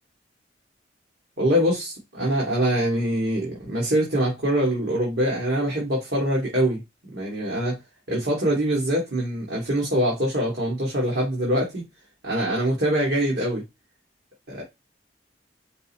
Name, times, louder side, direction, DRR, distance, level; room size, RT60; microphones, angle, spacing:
voice 1, 1.4-6.8 7.1-7.8 8.1-11.8 12.2-13.7 14.5-14.6, right 1 dB, 65° right, 1.7 m, -24 dB
5.2 x 2.0 x 4.2 m
head